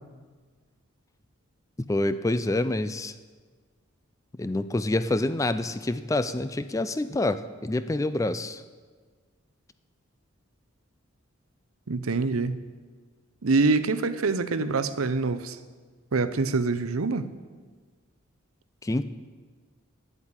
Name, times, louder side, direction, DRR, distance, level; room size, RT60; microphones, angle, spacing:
voice 1, 1.9-3.1 4.4-8.6 18.8-19.0, left 2 dB, 15° left, 13 dB, 0.4 m, -27 dB
voice 2, 11.9-12.5 13.4-15.6 16.1-17.3, right 3 dB, 90° right, 12 dB, 0.7 m, -25 dB
10.5 x 8.2 x 8.8 m, 1.5 s
head